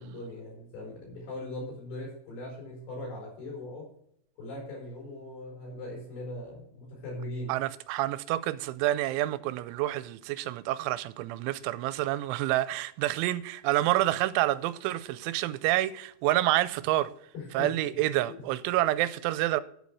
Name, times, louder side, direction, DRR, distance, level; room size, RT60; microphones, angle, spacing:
voice 1, 0.0-3.9 4.4-7.6 17.3-17.7, left 1 dB, 60° left, 6.2 m, -40 dB
voice 2, 7.5-17.1 17.5-19.6, right 15 dB, 85° right, 3.0 m, -28 dB
11.0 x 8.4 x 4.7 m
omnidirectional pair, 5.4 m